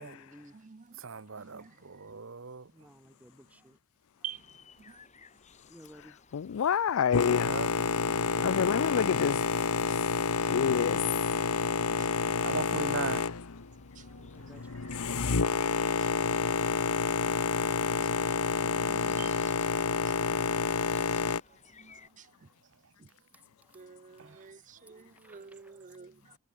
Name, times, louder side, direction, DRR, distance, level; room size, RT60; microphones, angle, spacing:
voice 1, 0.0-0.5 1.6-1.7 2.7-3.8 5.7-6.2 14.3-14.6 15.0-15.4 22.0-22.1 23.3-23.7 25.1-25.8, equal, 5° right, 1.4 m, -56 dB
voice 2, 0.5-1.0 1.4-2.2 4.2-4.4 4.8-5.0 9.9-10.2 11.4-11.6 12.0-12.1 14.0-15.2 15.7-16.1 17.9-19.4 20.0-20.2 21.7-22.3 23.0-23.1 23.7-26.4, right 7 dB, 35° right, 0.5 m, -49 dB
voice 3, 1.0-2.6 7.4-7.7 8.3-9.1 12.4-13.3 15.4-15.7, right 4 dB, 60° right, 0.9 m, -39 dB
sound 1, 4.3-22.1, left 5 dB, 30° left, 4.0 m, -59 dB
voice 4, 6.3-7.6 8.4-9.4 10.5-11.0, left 7 dB, 65° left, 0.4 m, -27 dB
Boat Water vehicle, 7.1-21.4, left 5 dB, 85° left, 1.0 m, -29 dB
head